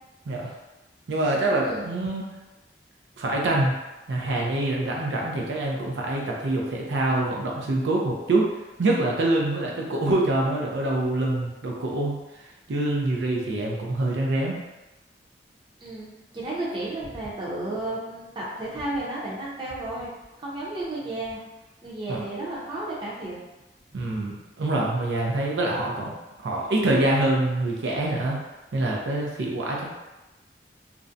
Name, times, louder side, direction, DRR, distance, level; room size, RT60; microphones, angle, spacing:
voice 1, 1.1-2.3 3.2-3.7 4.1-8.5 8.8-12.2 12.7-14.6 22.1-22.2 23.9-26.1 26.4-28.4 28.7-29.9, right 2 dB, 85° right, -1 dB, 0.4 m, -25 dB
voice 2, 15.8-20.1 20.4-21.4 21.8-23.5, right 2 dB, 25° right, -6 dB, 0.6 m, -33 dB
2.5 x 2.1 x 2.5 m, 1.0 s
head